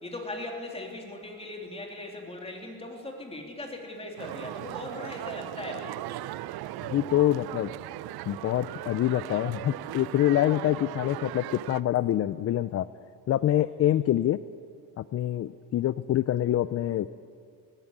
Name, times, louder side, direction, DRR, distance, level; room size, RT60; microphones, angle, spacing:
voice 1, 0.0-6.0, left 1 dB, 15° left, 1 dB, 3.3 m, -39 dB
sound 1, 4.2-11.8, right 14 dB, 70° right, 0.6 m, -38 dB
voice 2, 6.9-7.7 8.3-12.9 13.3-14.4 15.0-17.1, left 12 dB, 40° left, 15 dB, 0.5 m, -26 dB
18.0 x 15.0 x 10.0 m, 2.3 s
cardioid pair, 130°, 39 cm